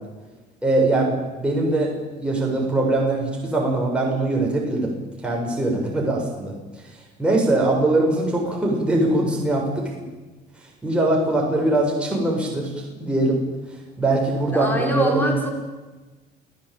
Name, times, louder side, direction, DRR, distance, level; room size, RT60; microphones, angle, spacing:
voice 1, 0.6-4.9 5.2-6.5 7.2-9.9 10.8-13.4 14.0-15.4, right 2 dB, 5° right, -2 dB, 7.8 m, -22 dB
voice 2, 14.5-15.5, equal, 10° left, 1 dB, 5.6 m, -24 dB
29.0 x 16.5 x 9.3 m, 1.2 s
cardioid pair, 110°, 17 cm